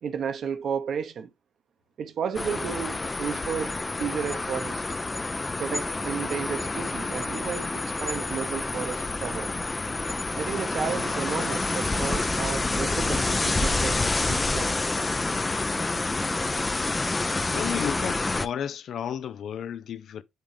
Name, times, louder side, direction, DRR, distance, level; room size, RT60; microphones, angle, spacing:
voice 1, 0.0-1.3 2.0-4.8 5.6-9.5 10.4-14.8, right 7 dB, 60° right, 1.0 m, -33 dB
sound 1, 2.3-18.5, left 2 dB, 20° left, 0.5 m, -28 dB
voice 2, 17.5-20.2, left 8 dB, 65° left, 0.6 m, -32 dB
9.5 x 3.5 x 3.4 m
cardioid pair, 90°, 0 cm